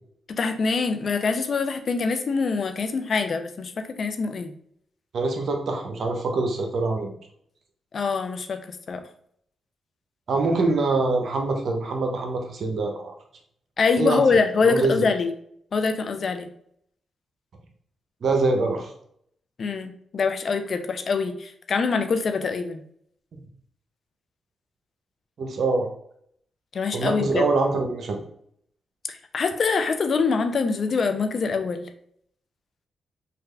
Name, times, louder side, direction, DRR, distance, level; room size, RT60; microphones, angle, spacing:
voice 1, 0.4-3.7 4.0-4.5 7.9-8.6 8.9-9.0 13.8-15.3 15.7-16.5 19.6-22.8 26.7-27.4 29.1-31.8, left 4 dB, 60° left, 7 dB, 0.4 m, -24 dB
voice 2, 5.1-7.1 10.3-13.1 14.0-14.2 14.6-15.1 18.2-18.9 25.4-25.9 26.9-28.2, right 3 dB, 65° right, 3 dB, 0.7 m, -24 dB
3.4 x 2.4 x 3.2 m, 0.68 s
supercardioid pair, 50°, 0 cm